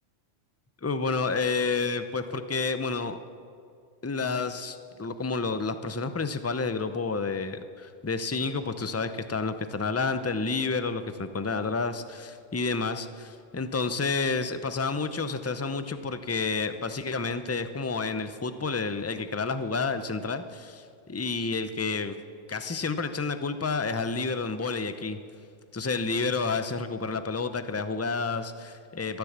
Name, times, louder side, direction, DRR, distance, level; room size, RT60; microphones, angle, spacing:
voice 1, 0.8-3.2 4.0-22.2 22.5-25.2 25.7-29.2, left 4 dB, 20° left, 10 dB, 0.4 m, -30 dB
13.5 x 13.0 x 7.3 m, 2.4 s
omnidirectional pair, 1.3 m